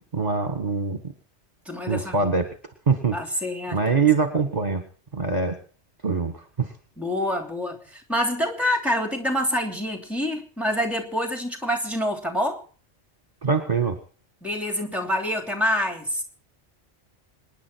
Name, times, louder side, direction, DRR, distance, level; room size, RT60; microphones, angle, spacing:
voice 1, 0.1-1.0 1.9-2.5 2.9-3.2 3.7-4.8 5.1-5.6 6.0-6.7 13.4-14.0, right 5 dB, 40° right, 7 dB, 1.6 m, -23 dB
voice 2, 1.6-2.3 3.1-3.9 7.0-12.6 14.4-16.2, left 1 dB, ahead, 5 dB, 3.1 m, -26 dB
26.5 x 10.5 x 4.5 m, 0.41 s
omnidirectional pair, 1.1 m